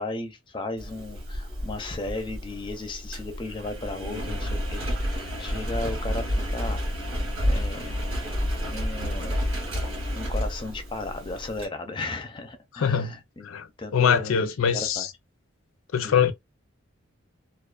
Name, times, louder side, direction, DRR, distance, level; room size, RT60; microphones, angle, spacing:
voice 1, 0.0-6.8 7.4-8.1 8.6-9.4 9.8-9.9 10.2-13.5 13.8-15.1 16.0-16.3, left 2 dB, 25° left, 0.4 m, -35 dB
Engine, 0.8-11.7, equal, 90° right, 1.1 m, -30 dB
voice 2, 12.8-13.1 13.4-13.7 13.9-15.1 15.9-16.3, left 7 dB, 85° left, 0.4 m, -23 dB
2.3 x 2.3 x 2.3 m
head